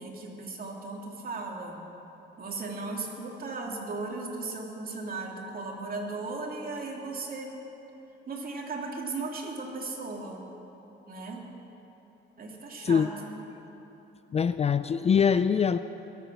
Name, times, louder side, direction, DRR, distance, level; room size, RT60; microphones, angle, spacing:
voice 1, 0.0-1.8 2.4-7.6 8.3-10.4 11.0-11.4 12.4-13.4, right 3 dB, 45° right, 0 dB, 2.6 m, -36 dB
voice 2, 14.3-15.8, left 7 dB, 30° left, 12 dB, 0.4 m, -23 dB
21.5 x 8.3 x 6.2 m, 3.0 s
cardioid pair, 90°, 20 cm